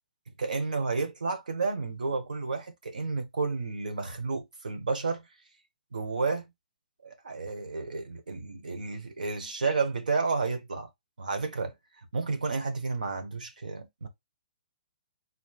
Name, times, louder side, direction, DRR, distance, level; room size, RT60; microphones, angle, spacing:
voice 1, 0.4-5.2 5.9-6.5 7.0-10.9 11.2-11.7 12.1-14.1, right 4 dB, 80° right, 1.1 m, -31 dB
3.9 x 3.3 x 2.4 m
figure-of-eight pair, 125°, 4 cm